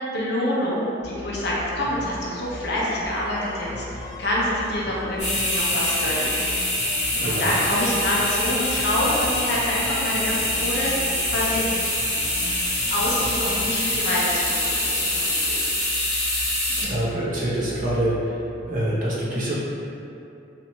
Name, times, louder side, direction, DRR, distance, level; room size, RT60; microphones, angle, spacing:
voice 1, 0.1-6.4 7.2-10.9 11.3-11.6 12.9-15.7, left 1 dB, 60° left, -5 dB, 0.5 m, -26 dB
sound 1, 1.0-18.7, left 2 dB, 70° right, 1.1 m, -40 dB
sound 2, 1.8-14.4 14.7-14.8, left 1 dB, 5° right, 0.8 m, -40 dB
sound 3, 5.2-16.8, left 1 dB, 35° left, 0.9 m, -25 dB
voice 2, 7.2-7.6 16.8-18.1 18.7-19.6, right 1 dB, 45° right, -7 dB, 0.6 m, -25 dB
2.9 x 2.1 x 2.9 m, 2.7 s
head